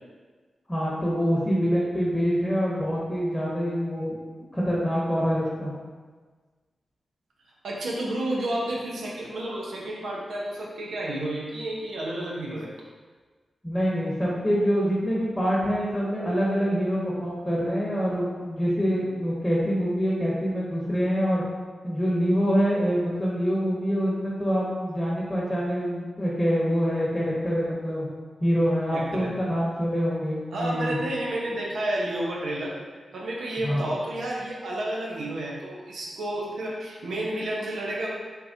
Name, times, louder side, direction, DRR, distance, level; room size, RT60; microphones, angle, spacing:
voice 1, 0.7-4.2 4.5-5.7 13.6-21.4 21.8-28.1 28.4-31.0 33.6-33.9, equal, 10° left, -6 dB, 1.0 m, -25 dB
voice 2, 7.6-12.7 28.9-29.3 30.5-32.7 33.1-38.1, right 1 dB, 85° right, -3 dB, 0.7 m, -31 dB
3.6 x 2.8 x 2.7 m, 1.4 s
cardioid pair, 45°, 0 cm